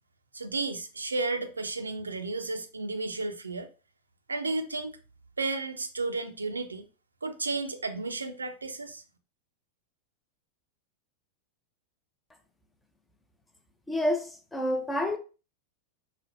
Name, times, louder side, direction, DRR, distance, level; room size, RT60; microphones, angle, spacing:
voice 1, 0.3-3.7 4.3-5.0 5.4-6.9 7.2-9.0, right 3 dB, 75° right, 0.4 m, -33 dB
voice 2, 13.9-15.2, left 1 dB, 10° left, 0.5 m, -28 dB
5.0 x 2.2 x 2.5 m
figure-of-eight pair, 90°, 0 cm